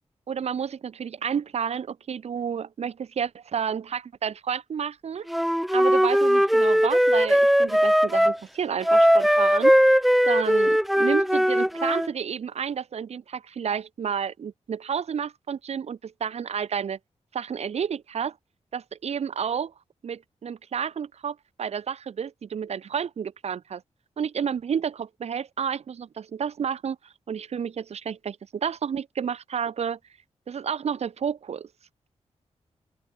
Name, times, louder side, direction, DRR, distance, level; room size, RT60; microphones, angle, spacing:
voice 1, 0.3-5.3 5.7-17.0 17.3-18.4 18.7-19.7 20.0-23.8 24.2-30.0 30.5-31.7, right 7 dB, 65° right, 1.1 m, -31 dB
Wind instrument woodwind instrument, 5.3-8.4 8.8-12.1, equal, ahead, 0.4 m, -19 dB
open air
wide cardioid pair, 155°, 12 cm